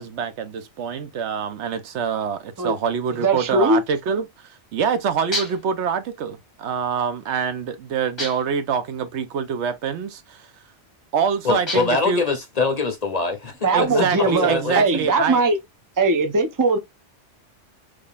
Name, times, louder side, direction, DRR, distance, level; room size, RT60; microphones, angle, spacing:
voice 1, 0.0-10.5 11.1-12.2 13.7-15.4, right 6 dB, 75° right, 0.9 m, -25 dB
voice 2, 3.1-3.8 13.6-15.6 16.0-16.8, right 3 dB, 25° right, 0.5 m, -20 dB
sound 1, 5.3-5.8 8.2-8.6 11.7-12.1, left 1 dB, 25° left, 1.1 m, -30 dB
voice 3, 11.4-13.5 13.9-14.8, left 3 dB, 40° left, 0.7 m, -23 dB
3.7 x 3.2 x 2.3 m
omnidirectional pair, 1.2 m